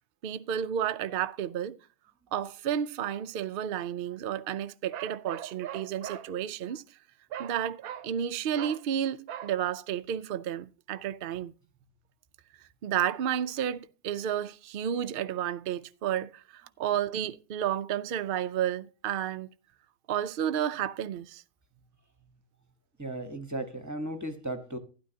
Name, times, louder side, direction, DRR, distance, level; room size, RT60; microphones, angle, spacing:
voice 1, 0.2-1.8 2.3-6.8 7.4-11.5 12.8-19.5 20.1-21.4, right 9 dB, 60° right, 0.6 m, -31 dB
Bark, 4.9-6.3 7.3-7.6 7.8-8.1 8.5-8.8 9.3-9.6, right 10 dB, 85° right, 1.2 m, -40 dB
voice 2, 23.0-24.8, right 1 dB, 15° right, 1.0 m, -35 dB
12.5 x 10.0 x 2.8 m
omnidirectional pair, 1.5 m